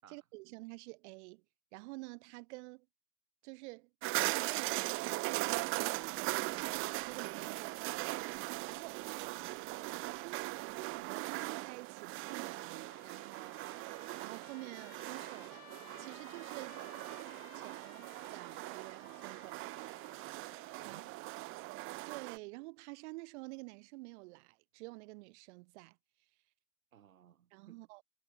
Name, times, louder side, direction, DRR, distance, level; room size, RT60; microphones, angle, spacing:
voice 1, 0.1-1.4 1.7-2.9 3.4-3.9 4.3-8.0 8.7-9.2 9.9-13.6 14.2-15.6 16.0-16.8 17.5-20.2 20.8-21.0 22.1-26.0 27.5-28.0, right 26 dB, 55° right, 1.0 m, -50 dB
sound 1, 4.0-22.4, right 22 dB, 30° right, 0.5 m, -39 dB
sound 2, 5.3-11.2, left 30 dB, 55° left, 5.4 m, -69 dB
voice 2, 9.2-9.6 19.1-19.2 20.8-21.1 26.9-27.8, right 9 dB, 80° right, 4.6 m, -60 dB
Trumpet, 12.1-21.3, left 10 dB, 75° left, 5.7 m, -59 dB
hypercardioid pair, 85°, 41 cm